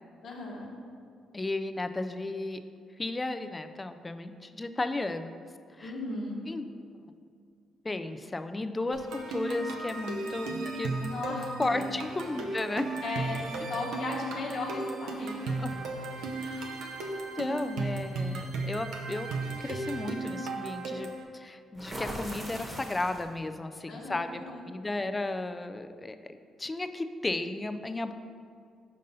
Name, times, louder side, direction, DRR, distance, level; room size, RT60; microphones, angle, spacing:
voice 1, 0.2-0.7 5.8-6.4 11.1-11.4 11.7-11.9 13.0-13.4 13.7-15.8 23.9-24.7, left 2 dB, 65° left, -2 dB, 1.0 m, -36 dB
voice 2, 1.3-2.6 3.0-5.3 5.8-5.9 6.5-6.6 7.8-11.2 11.6-12.9 15.6-15.7 16.4-16.6 17.1-19.3 19.6-24.4 24.7-28.1, left 2 dB, 20° left, 9 dB, 0.3 m, -34 dB
sound 1, 8.9-21.2, right 3 dB, 85° right, 0.6 m, -35 dB
sound 2, 15.1-15.7 17.1-17.3 17.8-18.0 21.7-23.4, equal, 20° right, 1.1 m, -40 dB
5.3 x 5.2 x 4.0 m, 2.3 s
cardioid pair, 90°, 0 cm